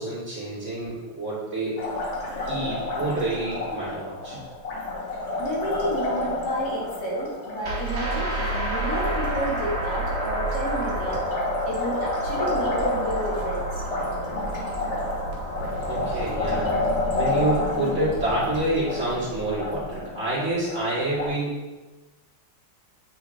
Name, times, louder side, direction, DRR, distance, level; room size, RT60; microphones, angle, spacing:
voice 1, 0.0-1.8 2.5-4.4 15.9-16.7 17.1-21.6, right 1 dB, 40° right, -9 dB, 2.6 m, -28 dB
Liquid, 1.8-21.3, left 2 dB, 45° left, 1.2 m, -30 dB
voice 2, 5.4-11.2 11.6-13.8, equal, 60° left, -6 dB, 2.3 m, -31 dB
sound 1, 7.6-18.6, right 2 dB, 85° right, 1.9 m, -31 dB
8.3 x 3.9 x 3.6 m, 1.1 s
omnidirectional pair, 2.0 m